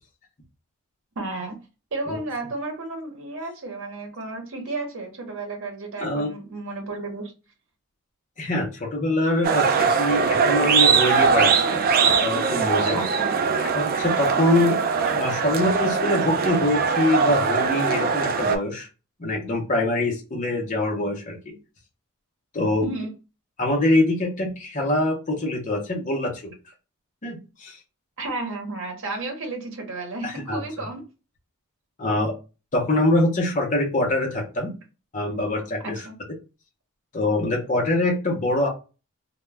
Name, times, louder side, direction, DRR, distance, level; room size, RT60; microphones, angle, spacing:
voice 1, 1.2-1.6 1.9-7.3 12.9-13.3 22.8-23.1 28.2-31.0 35.8-36.1, right 2 dB, 65° right, 0.8 m, -32 dB
voice 2, 6.0-6.3 8.4-11.8 12.1-13.0 13.7-14.8 15.0-18.9 19.2-21.5 22.5-22.9 23.6-26.5 27.2-27.8 30.2-30.6 32.0-32.3 32.7-34.7 35.1-36.0 37.1-38.7, left 1 dB, 35° left, 0.6 m, -24 dB
sound 1, 9.4-18.6, right 5 dB, 45° right, 0.3 m, -21 dB
2.2 x 2.1 x 3.2 m
head